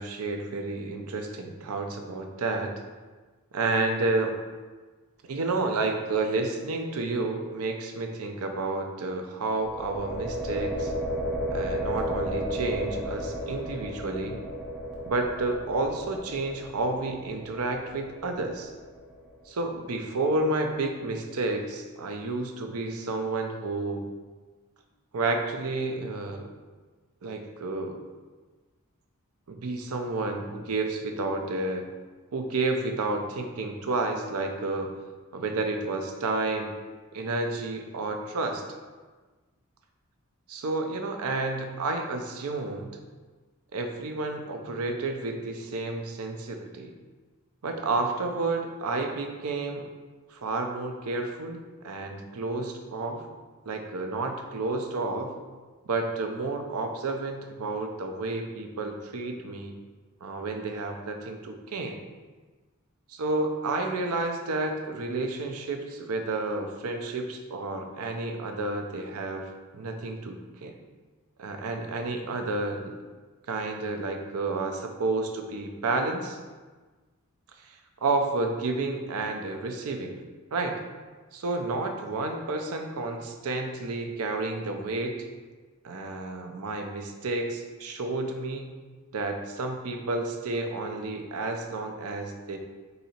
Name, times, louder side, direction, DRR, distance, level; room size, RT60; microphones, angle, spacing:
voice 1, 0.0-2.7 3.5-4.3 5.2-10.9 11.5-14.4 15.1-18.7 19.5-24.1 25.1-26.5 27.2-28.0 29.5-31.8 32.3-34.9 35.3-36.7 37.1-38.6 40.5-43.0 43.7-46.9 47.6-49.9 50.3-53.3 53.7-55.3 55.8-59.7 60.2-62.0 63.1-69.4 69.7-70.8 71.4-73.0 73.5-76.4 77.6-80.1 80.5-80.8 81.3-85.3 85.8-88.7 89.1-92.6, right 3 dB, 90° right, 5 dB, 0.5 m, -30 dB
sound 1, 9.6-19.4, equal, 5° right, 0.5 m, -34 dB
3.9 x 2.7 x 4.2 m, 1.3 s
head